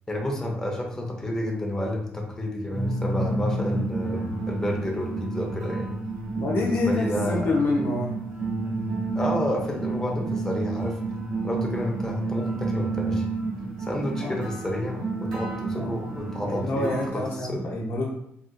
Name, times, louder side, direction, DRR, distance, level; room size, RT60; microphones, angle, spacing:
voice 1, 0.1-5.9 6.5-7.5 9.1-11.0 11.4-13.3 13.8-17.7, left 1 dB, 10° left, -1 dB, 0.6 m, -30 dB
sound 1, 2.7-17.1, right 3 dB, 75° right, 1.0 m, -30 dB
voice 2, 6.4-8.1 14.2-14.3 15.7-16.0 16.4-18.1, left 2 dB, 60° left, -1 dB, 0.7 m, -27 dB
3.6 x 2.4 x 2.5 m, 0.78 s
cardioid pair, 125°, 4 cm